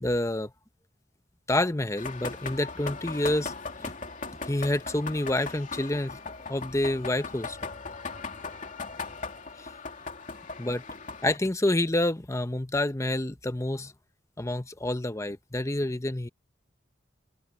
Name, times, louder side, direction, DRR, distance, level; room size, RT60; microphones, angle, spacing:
voice 1, 0.0-0.5 1.5-3.5 3.8-3.9 4.4-6.2 6.5-7.6 10.6-10.8 11.2-13.9 14.4-16.3, left 1 dB, 15° left, 0.9 m, -28 dB
sound 1, 2.0-11.4, left 4 dB, 45° left, 2.8 m, -38 dB
head